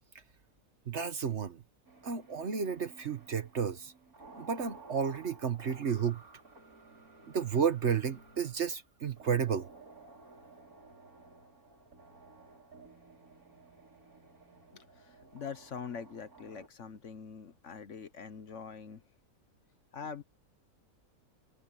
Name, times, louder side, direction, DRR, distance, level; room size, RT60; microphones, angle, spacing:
voice 1, 0.9-1.6 2.0-3.9 4.4-6.2 7.3-9.7, right 7 dB, 50° right, 1.3 m, -32 dB
sound 1, 1.8-16.7, right 3 dB, 70° right, 5.0 m, -55 dB
voice 2, 15.3-19.0 19.9-20.2, left 6 dB, 55° left, 1.3 m, -43 dB
omnidirectional pair, 1.6 m